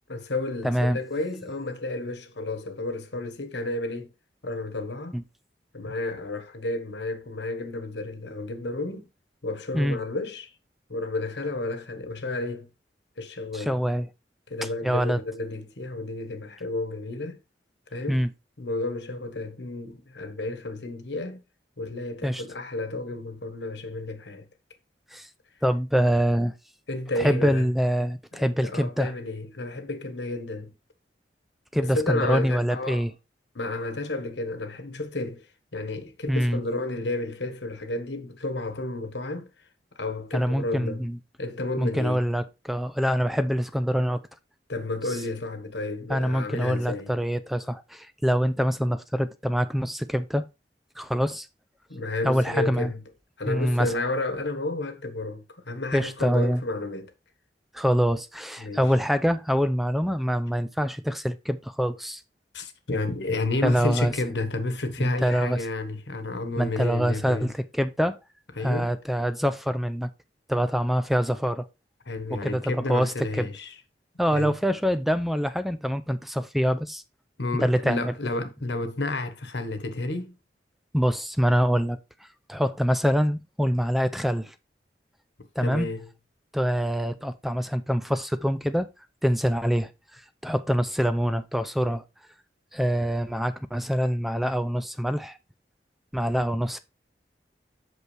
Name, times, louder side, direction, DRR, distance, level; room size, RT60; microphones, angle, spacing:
voice 1, 0.1-4.1 4.4-5.2 5.7-9.1 9.4-10.5 10.9-12.7 13.2-13.8 14.5-17.4 17.9-18.2 18.6-21.4 21.8-24.5 26.9-27.7 28.4-30.7 31.7-33.0 33.5-35.4 35.7-39.5 40.0-41.0 41.4-42.2 44.7-47.1 51.9-53.0 53.4-57.1 58.6-58.8 62.5-67.5 68.6-68.9 72.1-73.7 74.3-74.5 77.4-80.3 85.6-86.1, left 2 dB, 85° left, 1.3 m, -31 dB
voice 2, 0.6-1.0 5.1-5.2 9.7-10.0 13.5-14.1 14.8-15.2 18.1-18.3 22.2-22.4 25.1-25.3 25.6-26.5 27.2-29.1 31.7-33.1 36.3-36.6 40.3-41.2 41.8-44.2 46.1-50.4 51.0-51.5 52.2-52.9 53.5-53.9 55.9-56.6 57.7-62.2 63.6-64.1 65.0-65.6 66.6-68.2 68.6-70.1 70.5-71.7 72.3-73.5 74.2-77.0 77.5-78.1 80.9-82.0 82.5-84.5 85.6-85.9 86.5-88.9 89.2-92.0 92.7-95.4 96.1-96.8, equal, ahead, 0.4 m, -25 dB
8.1 x 6.2 x 3.3 m
head